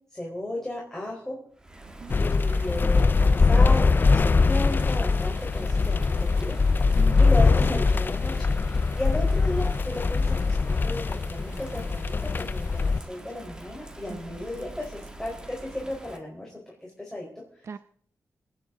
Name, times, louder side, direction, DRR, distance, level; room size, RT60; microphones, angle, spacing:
voice 1, 0.1-1.4 2.2-16.5 16.8-17.3 17.5-17.7, left 1 dB, 5° left, 4.8 m, -35 dB
Bird vocalization bird call bird song / Rain, 1.5-16.2, right 1 dB, 15° right, 1.8 m, -44 dB
voice 2, 1.9-2.2 6.9-7.8 14.1-14.5 17.6-17.8, right 5 dB, 55° right, 0.7 m, -39 dB
sound 1, 2.1-13.0, left 4 dB, 35° left, 0.5 m, -22 dB
26.5 x 10.0 x 4.0 m
wide cardioid pair, 115°, 6 cm